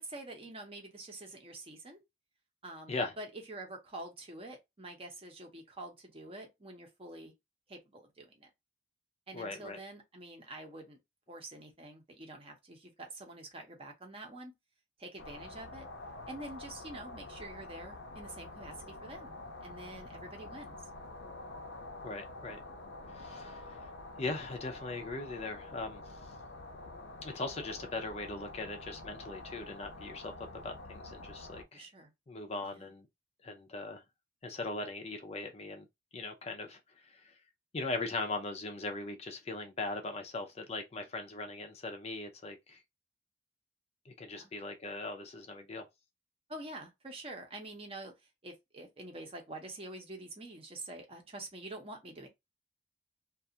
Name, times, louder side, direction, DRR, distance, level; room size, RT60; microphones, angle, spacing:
voice 1, 0.0-2.0 2.6-7.3 7.7-8.5 9.3-11.0 11.3-14.5 15.0-15.9 16.3-19.3 19.6-20.9 26.2-26.4 31.7-32.1 32.6-32.9 44.3-44.5 46.5-48.1 48.4-52.3, right 2 dB, 30° right, 0.7 m, -47 dB
voice 2, 9.3-9.8 22.0-22.6 23.1-23.6 24.2-26.0 27.2-30.3 30.6-31.9 32.3-33.1 33.4-34.0 34.4-35.9 36.1-37.2 37.7-42.8 44.1-45.8, left 2 dB, 35° left, 0.5 m, -39 dB
sound 1, 15.2-31.6, left 2 dB, 75° left, 0.6 m, -47 dB
2.4 x 2.3 x 2.7 m
head